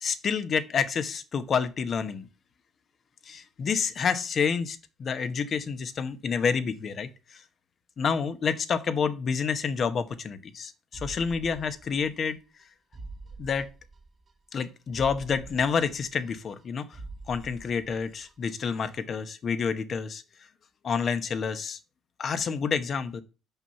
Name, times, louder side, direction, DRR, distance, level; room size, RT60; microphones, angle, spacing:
voice 1, 0.0-2.3 3.2-7.4 8.0-12.4 13.4-13.7 14.5-17.0 17.3-20.2 20.8-21.8 22.2-23.2, left 6 dB, 50° left, 0.9 m, -29 dB
sound 1, 10.9-12.3 12.6-12.7 12.9-14.3 14.6-14.7 14.9-16.6 16.9-18.3 18.6-18.7, right 3 dB, 40° right, 1.0 m, -45 dB
5.7 x 5.5 x 5.8 m
supercardioid pair, 75°, 0 cm